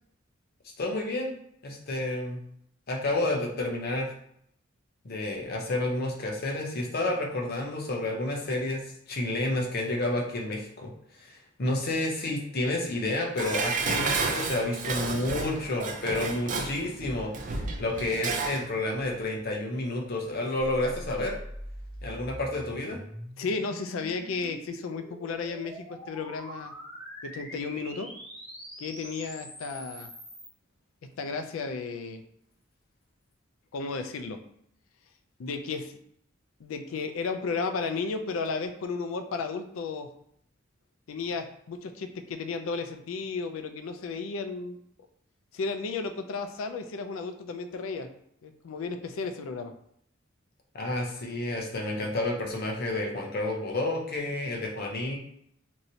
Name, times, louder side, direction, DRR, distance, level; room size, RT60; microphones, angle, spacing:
voice 1, 0.8-1.3 1.6-2.4 2.9-4.1 5.0-10.9 11.2-21.4 22.0-23.0 50.7-55.2, left 2 dB, 50° left, 0 dB, 0.6 m, -30 dB
Dishes pots and pans, 13.4-18.7 19.0-19.1, right 4 dB, 40° right, 0.4 m, -31 dB
sound 1, 20.6-30.5, equal, 5° left, 1.3 m, -43 dB
voice 2, 23.4-26.7 27.2-28.1 28.8-30.1 31.2-32.2 33.7-34.4 35.4-35.9 36.6-40.1 41.1-44.8 45.5-48.1 48.4-49.7, left 4 dB, 90° left, 7 dB, 0.4 m, -33 dB
3.1 x 2.6 x 2.7 m, 0.70 s
head